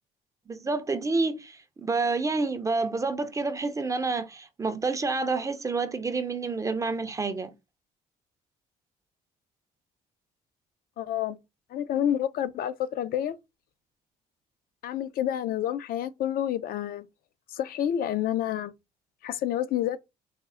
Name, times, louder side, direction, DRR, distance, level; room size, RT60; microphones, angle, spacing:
voice 1, 0.5-7.5, right 3 dB, 20° right, 0.4 m, -28 dB
voice 2, 11.0-11.4 11.7-13.4 14.8-17.1 17.5-18.7 19.2-20.0, left 11 dB, 60° left, 0.4 m, -29 dB
4.2 x 2.0 x 3.6 m
cardioid pair, 110°, 17 cm